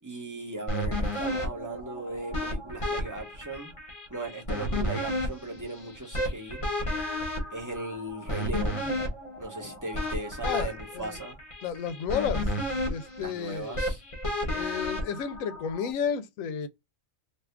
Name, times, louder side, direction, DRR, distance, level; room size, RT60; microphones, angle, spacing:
voice 1, 0.0-3.7 4.1-6.6 7.5-9.0 9.4-11.4 13.2-14.0, right 2 dB, 15° right, 0.8 m, -38 dB
sound 1, 0.7-15.9, left 1 dB, 30° left, 0.8 m, -32 dB
voice 2, 10.4-11.1 11.6-12.5 12.9-13.8 14.5-16.7, left 7 dB, 80° left, 1.0 m, -32 dB
2.7 x 2.4 x 3.3 m
omnidirectional pair, 1.4 m